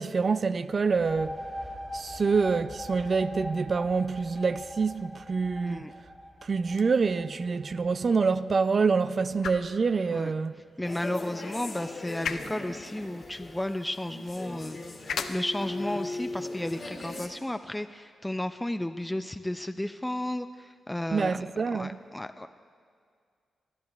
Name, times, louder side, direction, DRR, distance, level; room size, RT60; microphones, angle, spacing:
voice 1, 0.0-1.4 1.9-5.9 6.4-10.5 21.1-22.0, right 4 dB, 55° right, 0.3 m, -26 dB
sound 1, 0.8-8.2, equal, 15° right, 2.1 m, -42 dB
sound 2, 6.6-18.7, left 6 dB, 75° left, 0.4 m, -43 dB
sound 3, 10.8-17.3, left 2 dB, 50° left, 1.6 m, -39 dB
voice 2, 10.8-14.8 15.3-21.4 21.7-22.5, left 1 dB, 10° left, 0.4 m, -33 dB
20.5 x 12.0 x 2.4 m
supercardioid pair, 45°, 0 cm